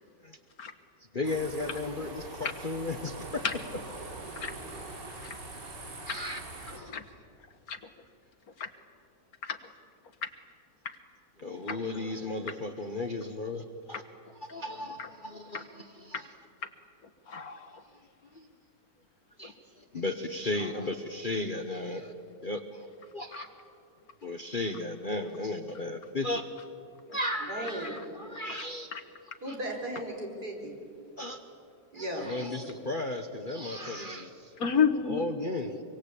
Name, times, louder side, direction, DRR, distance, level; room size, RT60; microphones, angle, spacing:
voice 1, 1.1-3.4 6.0-7.0 11.4-14.0 14.5-16.3 18.3-18.5 19.4-22.1 22.4-22.9 23.1-23.5 24.2-26.5 27.1-28.9 29.5-29.6 31.2-31.4 31.9-34.5 35.1-35.8, left 2 dB, 35° left, 6 dB, 1.1 m, -35 dB
sound 1, 1.2-6.8, right 2 dB, 90° right, 3.6 m, -43 dB
voice 2, 6.7-7.0 7.7-7.8 8.6-8.7 9.4-9.6 11.7-11.8 13.9-14.0 15.5-15.6 17.3-17.8 19.4-19.5 28.5-28.6 28.9-29.0 34.6-35.2, left 6 dB, 60° left, 9 dB, 1.7 m, -30 dB
voice 3, 27.5-28.0 29.4-30.8 31.9-32.4, right 1 dB, 65° right, 1 dB, 4.9 m, -36 dB
25.0 x 24.5 x 8.4 m, 2.5 s
omnidirectional pair, 1.8 m